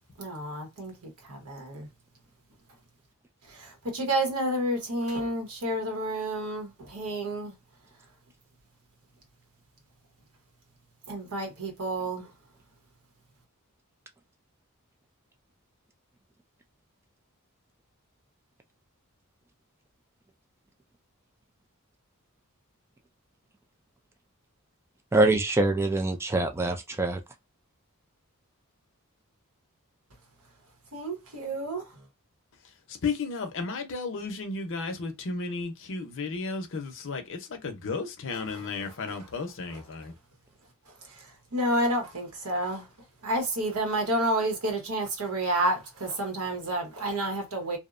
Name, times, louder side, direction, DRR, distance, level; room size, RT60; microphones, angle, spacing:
voice 1, 0.2-0.9 1.3-1.9 3.9-7.5 11.1-12.3 30.9-31.8 41.5-42.8 43.2-47.8, right 1 dB, 90° right, 1.1 m, -29 dB
voice 2, 25.1-27.2, right 2 dB, 10° right, 0.3 m, -24 dB
voice 3, 32.9-40.1, left 4 dB, 60° left, 0.6 m, -33 dB
2.6 x 2.1 x 2.4 m
head